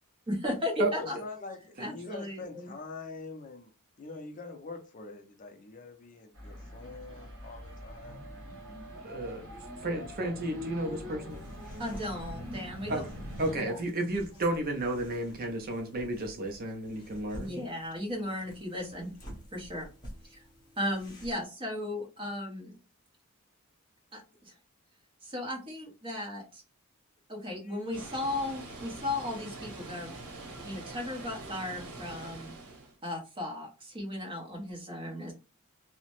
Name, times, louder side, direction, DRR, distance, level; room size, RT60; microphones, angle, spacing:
voice 1, 0.3-1.1 1.8-2.7 11.8-13.0 13.6-13.8 17.3-19.1 19.5-19.9 20.3-20.4 20.8-22.7 24.1-24.5 25.2-26.6 27.3-30.1 30.6-32.5 33.0-35.3, left 1 dB, 25° right, 0.8 m, -36 dB
voice 2, 1.0-3.7 4.0-8.2 27.6-27.8, left 3 dB, 35° left, 0.4 m, -44 dB
sound 1, 6.3-13.6, left 1 dB, 65° right, 1.1 m, -43 dB
voice 3, 9.0-11.5 12.9-13.1 13.4-17.7, right 1 dB, 40° right, 0.5 m, -33 dB
sound 2, 11.3-21.5, equal, 20° left, 0.8 m, -49 dB
Water, 27.9-33.0, right 2 dB, 85° right, 0.8 m, -44 dB
2.8 x 2.1 x 2.9 m
head